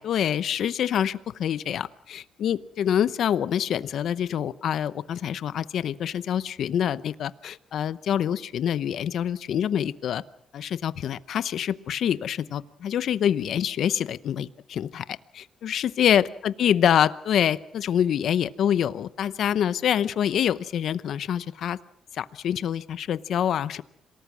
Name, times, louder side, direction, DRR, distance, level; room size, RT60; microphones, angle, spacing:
voice 1, 0.0-10.2 10.5-15.1 15.3-21.8 22.1-23.8, left 9 dB, 70° left, 16 dB, 0.8 m, -26 dB
27.0 x 19.0 x 6.2 m, 0.70 s
cardioid pair, 90°, 0 cm